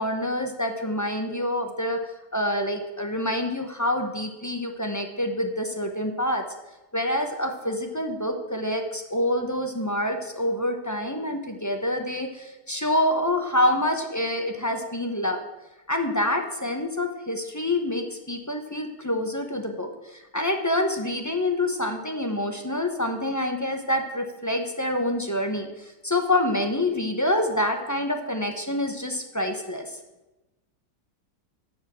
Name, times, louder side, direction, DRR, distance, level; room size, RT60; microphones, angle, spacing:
voice 1, 0.0-2.0 2.3-6.4 6.9-15.4 15.9-30.0, left 1 dB, 15° left, 4 dB, 0.7 m, -27 dB
12.5 x 4.8 x 7.5 m, 1.0 s
omnidirectional pair, 1.7 m